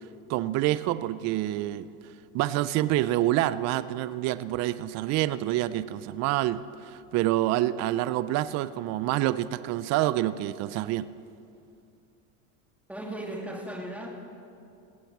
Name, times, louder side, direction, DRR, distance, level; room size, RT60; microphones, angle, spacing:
voice 1, 0.3-1.9 2.3-11.1, right 14 dB, 45° right, 15 dB, 0.5 m, -27 dB
voice 2, 12.9-14.1, right 1 dB, 5° right, 0 dB, 2.4 m, -36 dB
17.0 x 9.1 x 7.2 m, 2.5 s
supercardioid pair, 120°, 39 cm